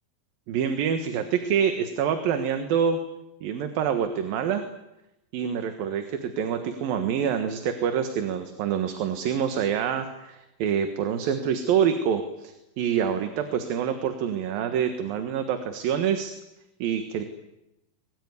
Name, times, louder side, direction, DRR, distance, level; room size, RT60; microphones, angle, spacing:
voice 1, 0.5-3.0 3.4-4.6 5.3-16.3 16.8-17.2, right 8 dB, 70° right, 8 dB, 3.2 m, -26 dB
23.0 x 22.0 x 9.8 m, 0.91 s
omnidirectional pair, 4.5 m